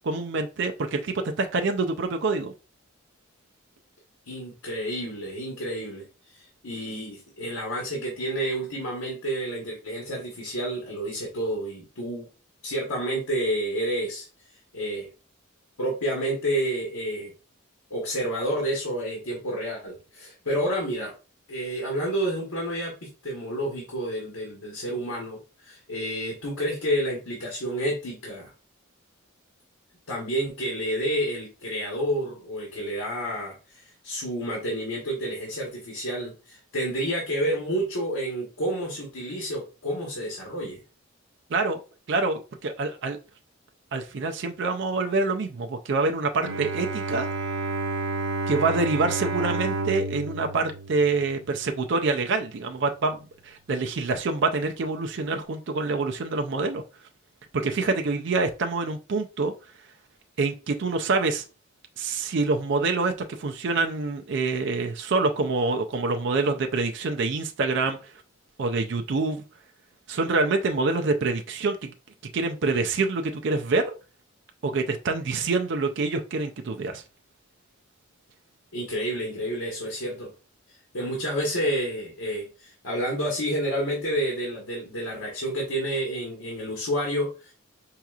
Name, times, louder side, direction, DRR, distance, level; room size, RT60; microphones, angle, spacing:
voice 1, 0.0-2.5 41.5-41.8 42.1-43.2 43.9-47.3 48.5-56.8 57.5-59.5 60.4-61.4 62.0-63.1 63.4-68.0 68.6-69.4 70.1-71.9 72.3-73.9 74.6-77.0, right 3 dB, 55° right, 0.4 m, -26 dB
voice 2, 4.2-12.3 12.6-14.3 14.7-15.1 15.8-17.3 17.9-21.1 21.5-28.5 30.1-40.8 78.7-80.3 80.7-87.5, right 1 dB, 90° left, 1.2 m, -29 dB
Bowed string instrument, 46.4-51.7, right 3 dB, 90° right, 0.8 m, -31 dB
4.8 x 2.9 x 2.3 m
head